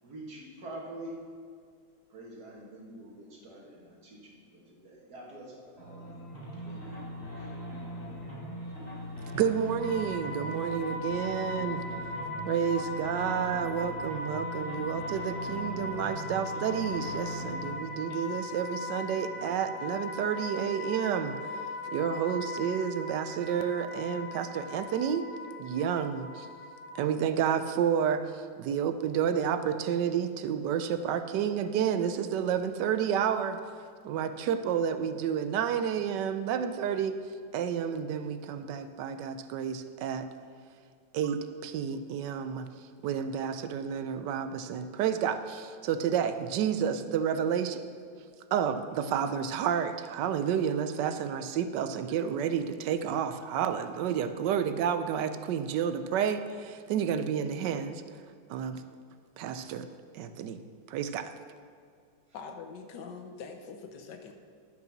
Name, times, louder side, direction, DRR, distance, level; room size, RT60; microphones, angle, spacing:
voice 1, 0.0-1.2 2.1-6.1 6.5-7.0 7.4-7.5, right 1 dB, 65° right, -3 dB, 2.3 m, -46 dB
sound 1, 5.8-19.9, equal, 45° left, 3.2 m, -41 dB
voice 2, 9.3-11.8 12.5-21.4 21.9-25.2 25.6-26.5 27.0-33.6 34.0-37.2 37.5-40.3 41.1-42.7 43.0-47.8 48.5-58.0 58.5-58.8 59.4-59.9 60.1-60.6 60.9-61.3, right 8 dB, 85° right, 10 dB, 1.3 m, -30 dB
sound 2, 9.8-27.0, left 2 dB, 10° right, 2.3 m, -39 dB
voice 3, 62.3-64.3, left 5 dB, 85° left, 5 dB, 1.6 m, -43 dB
11.0 x 6.0 x 5.9 m, 2.2 s
omnidirectional pair, 1.8 m